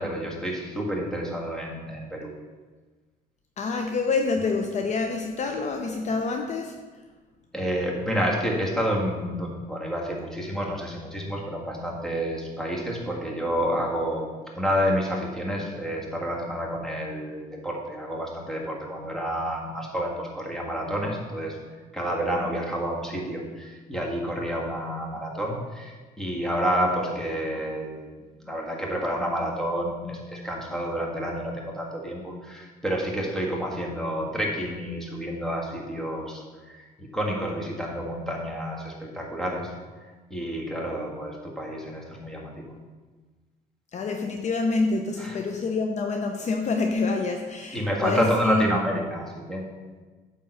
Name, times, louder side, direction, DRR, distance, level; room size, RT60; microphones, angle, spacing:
voice 1, 0.0-2.3 7.5-14.3 14.5-21.6 21.9-28.1 28.4-39.7 40.3-42.7 45.2-45.3 47.7-49.7, equal, ahead, -2 dB, 1.8 m, -29 dB
voice 2, 3.6-6.7 43.9-48.7, left 4 dB, 45° left, 3 dB, 0.7 m, -27 dB
8.8 x 3.8 x 6.5 m, 1.3 s
cardioid pair, 110°, 17 cm